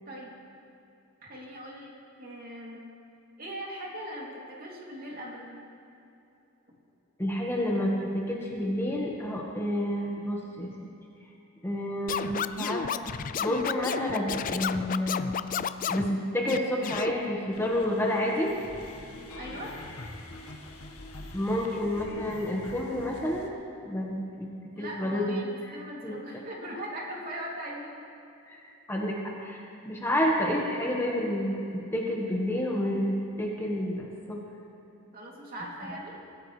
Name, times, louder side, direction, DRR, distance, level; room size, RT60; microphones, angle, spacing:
voice 1, 1.2-1.9 2.2-2.8 3.4-5.6 19.4-19.7 24.7-28.0 35.1-36.2, equal, 40° right, -3 dB, 3.0 m, -40 dB
voice 2, 7.2-10.7 11.6-12.8 13.4-15.4 15.9-18.5 21.3-23.5 23.8-24.5 24.8-25.3 25.7-25.8 26.0-26.2 28.5-28.6 28.9-34.4, left 1 dB, 10° left, -2 dB, 1.5 m, -29 dB
Scratching (performance technique), 12.1-16.1 16.5-17.1, left 7 dB, 40° left, 0.4 m, -32 dB
sound 1, 17.5-23.5, left 1 dB, 85° left, 1.6 m, -44 dB
25.0 x 16.0 x 3.3 m, 2.8 s
head